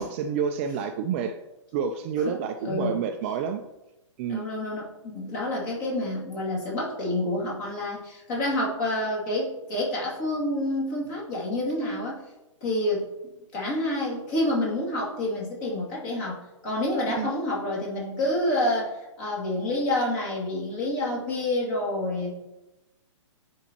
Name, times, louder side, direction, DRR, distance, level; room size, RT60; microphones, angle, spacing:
voice 1, 0.0-1.4 1.7-3.6 4.2-4.5 17.2-17.3, right 7 dB, 25° right, 6 dB, 0.3 m, -28 dB
voice 2, 2.6-3.0 4.3-12.2 12.6-13.1 13.5-22.3, left 1 dB, 35° left, -4 dB, 2.5 m, -28 dB
10.0 x 4.4 x 2.9 m, 0.97 s
figure-of-eight pair, 125°, 16 cm